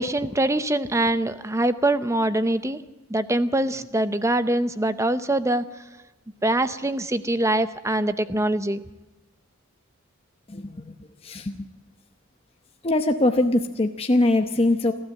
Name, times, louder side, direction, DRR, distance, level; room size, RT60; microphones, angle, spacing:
voice 1, 0.0-2.8 3.1-5.6 6.4-8.8, right 1 dB, 15° right, 12 dB, 0.7 m, -23 dB
voice 2, 10.5-10.9 11.2-11.6 12.8-14.9, left 2 dB, 30° left, 5 dB, 0.8 m, -22 dB
28.5 x 12.5 x 7.6 m, 1.1 s
head